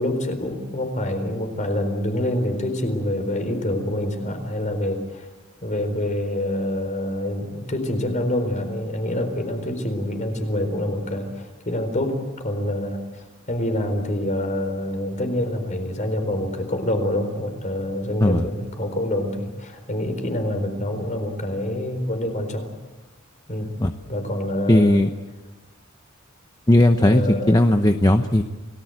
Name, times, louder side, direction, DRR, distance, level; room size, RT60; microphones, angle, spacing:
voice 1, 0.0-5.3 5.6-22.7 23.5-23.7 24.1-25.0 27.0-27.6, left 1 dB, 35° left, 7 dB, 4.2 m, -26 dB
voice 2, 24.7-25.1 26.7-28.4, left 1 dB, 20° left, 7 dB, 0.8 m, -17 dB
29.5 x 19.0 x 8.0 m, 1.2 s
head